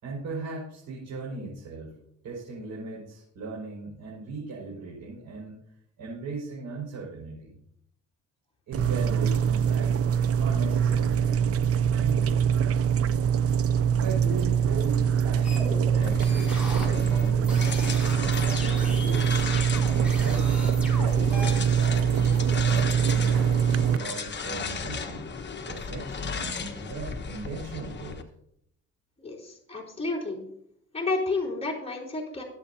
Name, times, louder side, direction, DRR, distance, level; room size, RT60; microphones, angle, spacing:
voice 1, 0.0-2.0 2.2-5.6 6.0-7.5 8.7-11.6 12.0-12.6 14.0-19.6 20.2-25.3 25.7-28.2, right 4 dB, 75° right, -4 dB, 5.4 m, -38 dB
sound 1, 8.7-24.0, right 8 dB, 50° right, 0.5 m, -23 dB
sound 2, 15.4-21.5, left 1 dB, 5° right, 6.0 m, -38 dB
sound 3, 16.0-28.2, left 5 dB, 35° left, 1.3 m, -35 dB
voice 2, 29.2-30.4 30.9-32.4, left 3 dB, 20° left, -2 dB, 3.8 m, -30 dB
23.0 x 8.3 x 2.8 m, 0.72 s
cardioid pair, 90°, 30 cm